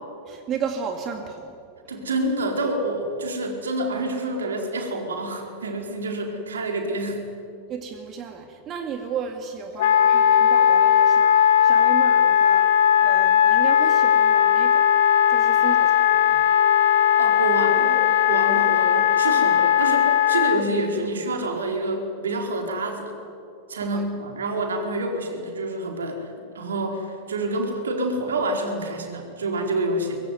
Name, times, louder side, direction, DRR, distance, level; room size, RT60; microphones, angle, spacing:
voice 1, 0.3-1.6 7.7-14.9 15.3-16.5 23.8-24.1, right 6 dB, 30° right, 5 dB, 2.2 m, -34 dB
voice 2, 1.9-7.2 15.6-15.7 17.2-18.0 18.3-23.1 23.7-30.2, right 1 dB, 70° right, 3 dB, 4.4 m, -27 dB
Wind instrument woodwind instrument, 9.8-20.6, left 9 dB, 55° left, 1.4 m, -18 dB
24.0 x 22.0 x 9.6 m, 2.5 s
figure-of-eight pair, 90°, 0 cm